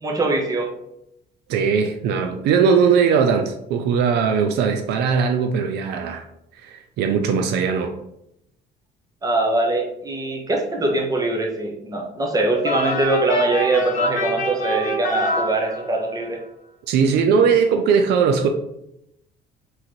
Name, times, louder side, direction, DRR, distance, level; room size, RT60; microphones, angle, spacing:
voice 1, 0.0-0.7 9.2-16.4, right 2 dB, 20° right, 1 dB, 1.1 m, -22 dB
voice 2, 1.5-6.2 6.5-8.0 16.9-18.5, right 6 dB, 80° right, 5 dB, 0.6 m, -19 dB
sound 1, 12.6-16.2, left 1 dB, 45° left, 1.3 m, -26 dB
3.8 x 3.2 x 4.3 m, 0.79 s
cardioid pair, 110°, 17 cm